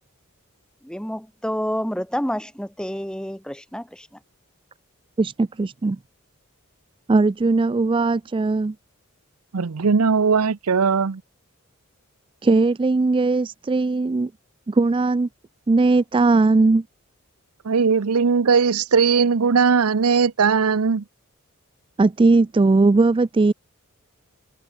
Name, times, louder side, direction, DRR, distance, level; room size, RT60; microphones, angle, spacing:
voice 1, 0.8-4.1, equal, 5° left, 2.8 m, -28 dB
voice 2, 5.2-6.0 7.1-8.7 12.4-14.3 14.7-15.3 15.7-16.8 22.0-23.5, right 3 dB, 25° right, 0.3 m, -19 dB
voice 3, 9.5-11.2 17.6-21.0, right 5 dB, 90° right, 0.7 m, -19 dB
head